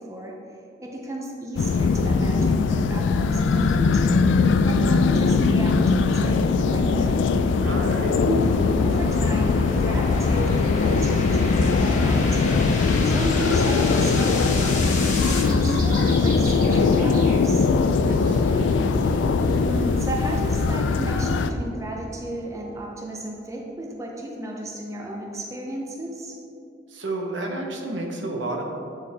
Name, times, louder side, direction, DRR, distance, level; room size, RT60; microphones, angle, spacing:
voice 1, 0.0-4.2 4.6-7.3 8.2-8.5 8.8-17.7 19.4-26.4, right 1 dB, 15° right, -1 dB, 0.6 m, -33 dB
sound 1, 1.6-21.5, left 4 dB, 75° left, 0.3 m, -21 dB
sound 2, 4.3-15.4, left 2 dB, 40° left, 1.1 m, -35 dB
voice 2, 7.6-8.1 18.0-18.8 26.9-28.6, right 2 dB, 80° right, 1 dB, 0.9 m, -31 dB
sound 3, 13.9-20.8, equal, 45° right, 1.4 m, -36 dB
8.3 x 4.4 x 3.5 m, 2.8 s
head